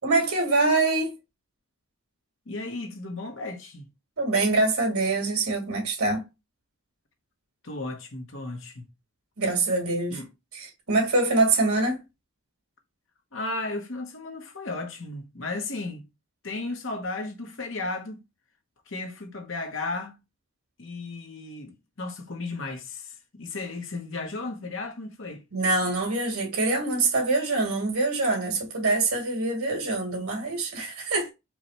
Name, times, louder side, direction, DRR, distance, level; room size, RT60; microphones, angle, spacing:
voice 1, 0.0-1.2 4.2-6.2 9.4-10.2 10.5-12.0 25.5-31.3, right 3 dB, 85° right, 2.2 m, -24 dB
voice 2, 2.5-3.9 7.6-8.9 10.1-10.3 13.3-16.1 16.4-18.2 18.9-20.2 20.8-25.4, left 2 dB, 65° left, 1.1 m, -34 dB
4.8 x 2.4 x 4.1 m
head